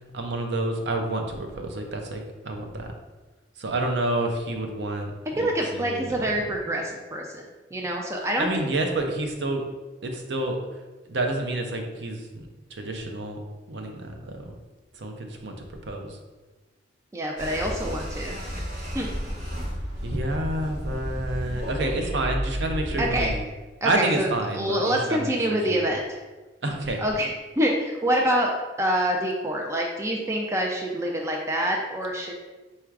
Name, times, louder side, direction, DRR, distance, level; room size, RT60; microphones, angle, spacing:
voice 1, 0.1-2.9 3.6-6.1 8.4-9.6 10.0-10.6 11.1-13.4 13.7-14.5 15.0-16.2 20.0-23.4 23.8-25.8 26.6-27.0, right 2 dB, 60° right, 3 dB, 0.5 m, -29 dB
voice 2, 5.4-7.4 7.7-8.7 17.1-18.4 18.9-19.1 23.0-23.3 23.8-26.2 27.0-28.5 28.8-32.3, right 1 dB, 15° right, 0 dB, 0.3 m, -26 dB
sound 1, 17.4-23.3, equal, 35° right, 0.9 m, -32 dB
4.2 x 2.4 x 4.6 m, 1.2 s
head